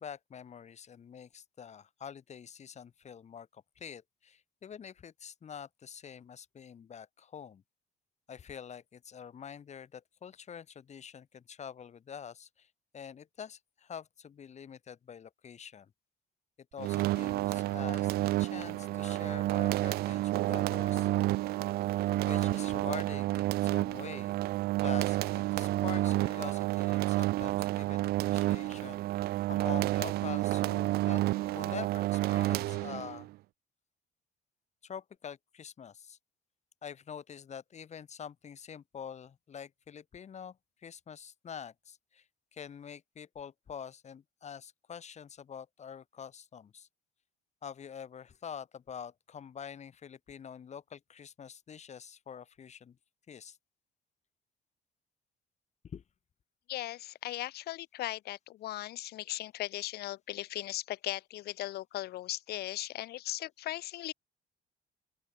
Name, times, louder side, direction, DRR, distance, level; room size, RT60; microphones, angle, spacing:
voice 1, 0.0-7.6 8.3-12.7 12.9-15.9 16.7-21.1 22.2-24.4 24.8-31.2 31.5-33.3 34.8-36.2 36.8-40.6 40.8-42.2 42.5-46.9 47.6-53.0 53.3-53.6 55.9-56.0, left 7 dB, 40° left, 5.2 m, -46 dB
sound 1, 16.8-33.3, right 17 dB, 70° right, 0.4 m, -30 dB
voice 2, 56.7-64.1, left 15 dB, 70° left, 1.3 m, -38 dB
open air
cardioid pair, 110°, 17 cm